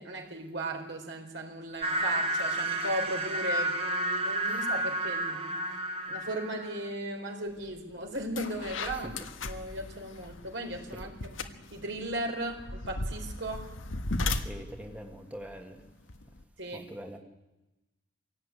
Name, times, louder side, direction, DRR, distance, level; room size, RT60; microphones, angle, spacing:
voice 1, 0.0-5.5 6.1-9.2 9.4-11.4 11.7-13.7 16.6-16.8, right 1 dB, 65° right, 3 dB, 4.2 m, -36 dB
sound 1, 1.8-6.9, right 1 dB, 30° right, 1.8 m, -31 dB
sound 2, 7.6-7.8 8.1-16.4, left 2 dB, 90° left, 1.5 m, -37 dB
voice 2, 14.4-15.8 16.7-17.2, equal, 5° right, 3 dB, 1.5 m, -43 dB
24.5 x 17.0 x 9.6 m, 1.0 s
head